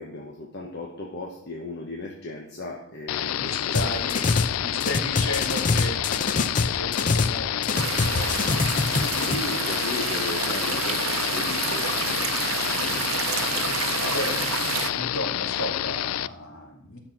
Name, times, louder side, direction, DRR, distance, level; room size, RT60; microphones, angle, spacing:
voice 1, 0.0-3.9 4.4-4.6 9.2-11.9, left 2 dB, 55° left, -1 dB, 1.3 m, -36 dB
sound 1, 3.1-16.3, left 12 dB, 85° left, 0.3 m, -28 dB
voice 2, 3.4-4.3 4.6-8.6 8.9-9.3 12.7-13.3 14.0-14.4 14.8-17.0, left 1 dB, 70° left, 0 dB, 2.4 m, -34 dB
sound 2, 3.7-4.5 4.8-7.4 7.6-9.4, left 3 dB, 40° left, 0.7 m, -24 dB
sound 3, 7.7-14.9, right 8 dB, 75° right, 0.7 m, -29 dB
11.0 x 6.0 x 6.0 m, 0.73 s
head